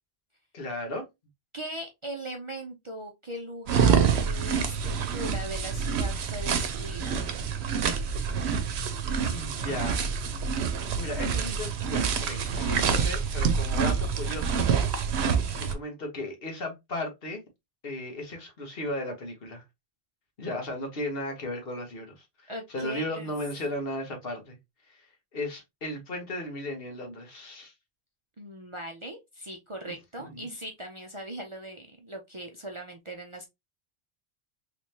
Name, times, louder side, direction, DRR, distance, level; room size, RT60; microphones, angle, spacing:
voice 1, 0.5-1.1 9.3-10.2 11.0-14.6 15.6-17.4 17.8-19.6 20.4-24.6 24.9-25.1 25.3-27.7 30.2-30.5, left 1 dB, 60° left, 1.3 m, -35 dB
voice 2, 1.5-7.2 22.5-23.3 28.4-33.5, right 1 dB, 35° right, 0.6 m, -39 dB
sound 1, 3.7-15.7, right 6 dB, 80° right, 0.9 m, -27 dB
3.3 x 3.2 x 2.7 m
omnidirectional pair, 1.1 m